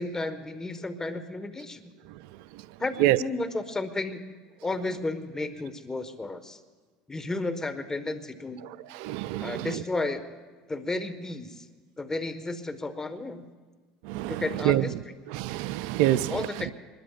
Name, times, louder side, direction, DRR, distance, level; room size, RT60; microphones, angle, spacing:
voice 1, 0.0-1.9 2.8-4.4 4.6-6.6 7.1-8.6 9.4-10.2 10.7-11.7 12.0-13.4 14.3-14.9 16.1-16.7, left 2 dB, 15° left, 1.5 m, -33 dB
voice 2, 8.9-9.7 14.0-14.8 15.3-16.4, right 14 dB, 70° right, 0.5 m, -26 dB
25.5 x 20.5 x 2.5 m
hypercardioid pair, 80°, 4 cm